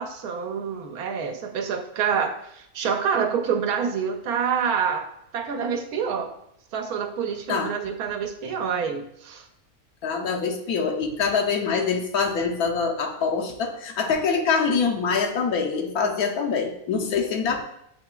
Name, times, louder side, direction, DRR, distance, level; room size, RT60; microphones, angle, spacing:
voice 1, 0.0-6.3 6.7-9.5, right 6 dB, 85° right, 5 dB, 1.1 m, -27 dB
voice 2, 10.0-17.6, left 5 dB, 80° left, 2 dB, 1.2 m, -24 dB
7.0 x 2.9 x 2.3 m, 0.75 s
omnidirectional pair, 1.6 m